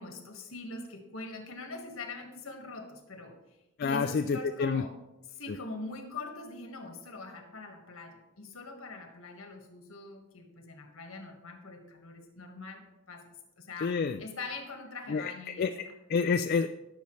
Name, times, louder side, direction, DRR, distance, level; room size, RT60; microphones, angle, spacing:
voice 1, 0.0-3.4 3.8-4.9 5.3-13.3 13.6-13.9 14.2-15.7, left 3 dB, 65° left, 4 dB, 1.6 m, -43 dB
voice 2, 3.8-4.8 5.5-5.6 13.8-14.2 15.1-16.7, left 5 dB, 45° left, 7 dB, 0.3 m, -29 dB
17.0 x 6.9 x 3.2 m, 1.0 s
head